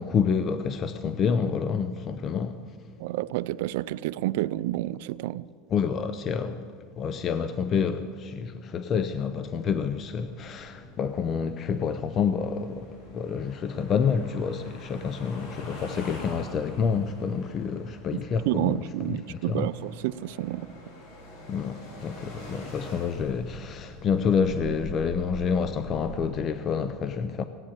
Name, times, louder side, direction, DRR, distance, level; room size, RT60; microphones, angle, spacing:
voice 1, 0.0-2.6 5.7-6.6 7.0-12.9 13.1-18.8 19.1-19.7 21.5-27.5, left 6 dB, 35° left, 0.6 m, -28 dB
voice 2, 3.0-5.5 18.1-20.7, right 15 dB, 75° right, 0.4 m, -30 dB
sound 1, 8.7-26.2, left 1 dB, 70° left, 4.5 m, -44 dB
17.0 x 9.0 x 8.6 m
supercardioid pair, 135°, 0 cm